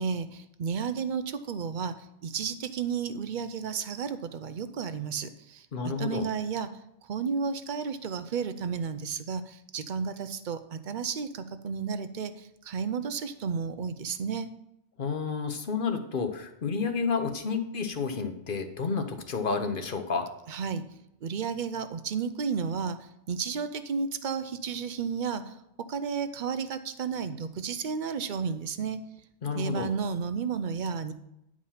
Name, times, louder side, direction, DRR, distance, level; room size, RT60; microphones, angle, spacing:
voice 1, 0.0-1.9 2.2-6.7 7.0-14.5 20.5-20.8 21.2-25.5 25.9-29.0 29.5-31.1, right 6 dB, 50° right, 11 dB, 0.7 m, -32 dB
voice 2, 5.7-6.3 15.0-20.3 29.4-29.9, left 5 dB, 50° left, 7 dB, 1.0 m, -30 dB
10.0 x 4.9 x 5.6 m, 0.81 s
omnidirectional pair, 1.2 m